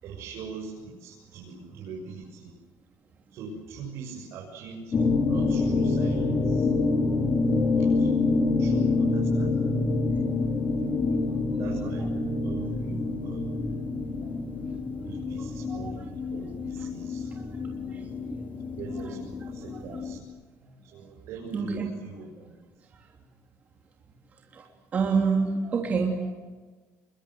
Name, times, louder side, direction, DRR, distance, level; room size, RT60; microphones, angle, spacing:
voice 1, 0.0-2.5 3.3-5.0 5.3-6.7 7.7-8.1 8.6-9.7 10.8-11.1 11.6-12.1 12.4-13.5 15.0-17.3 18.8-20.2 20.8-22.5, right 5 dB, 60° right, -1 dB, 6.9 m, -42 dB
sound 1, 4.9-20.2, left 3 dB, 30° left, 3.3 m, -27 dB
voice 2, 15.3-15.9 16.8-16.9 17.3-17.4 17.8-18.1 18.3-18.4 19.7-20.0 21.5-21.9 24.5-24.6 24.9-26.3, right 5 dB, 30° right, 0 dB, 3.2 m, -28 dB
29.0 x 24.0 x 7.7 m, 1.3 s
cardioid pair, 180°, 5 cm